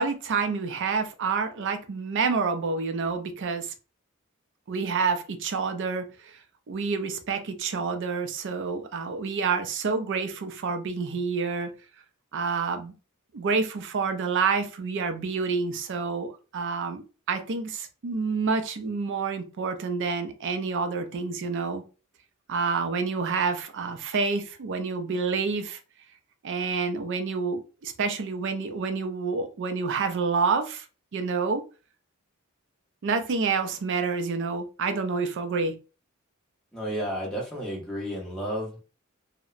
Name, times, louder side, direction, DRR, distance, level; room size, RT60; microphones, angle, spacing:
voice 1, 0.0-3.7 4.7-6.4 6.7-11.7 12.3-12.9 13.3-21.8 22.5-25.8 26.4-30.8 31.1-31.7 33.0-35.7, right 4 dB, 60° right, 0.4 m, -28 dB
voice 2, 36.7-38.8, equal, 5° left, 0.7 m, -32 dB
2.7 x 2.0 x 2.4 m
head